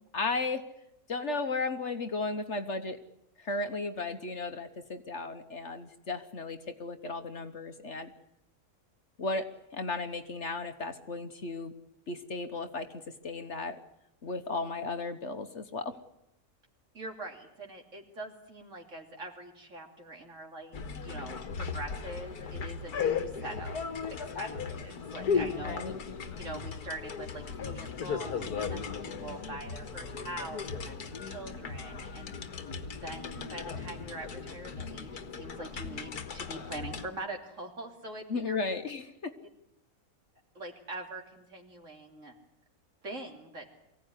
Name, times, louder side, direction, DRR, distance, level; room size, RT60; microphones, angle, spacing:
voice 1, 0.1-0.6 1.1-3.0 3.4-8.1 9.2-11.7 12.1-12.9 13.2-13.8 14.2-16.0 25.6-25.9 38.3-39.3, left 3 dB, 50° left, 8 dB, 1.4 m, -35 dB
voice 2, 16.9-23.8 24.1-25.8 26.4-32.3 33.0-38.6 40.5-42.3 43.0-43.7, right 2 dB, 50° right, 2 dB, 3.4 m, -43 dB
sound 1, 20.7-37.1, left 6 dB, 85° left, 2.0 m, -36 dB
24.0 x 16.5 x 9.8 m, 0.81 s
omnidirectional pair, 1.6 m